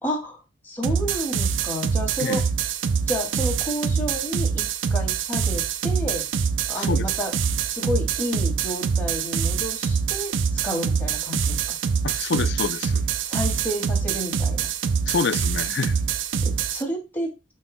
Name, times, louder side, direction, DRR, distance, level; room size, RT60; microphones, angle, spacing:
voice 1, 0.0-2.4 3.1-4.6 4.9-6.3 6.7-7.3 7.7-10.3 10.6-11.6 13.3-14.7 16.4-17.3, equal, 10° left, 2.4 m, -30 dB
sound 1, 0.8-16.8, right 6 dB, 80° right, 0.5 m, -25 dB
voice 2, 12.0-13.0 15.1-16.0, left 5 dB, 65° left, 0.5 m, -27 dB
11.0 x 4.4 x 2.2 m
head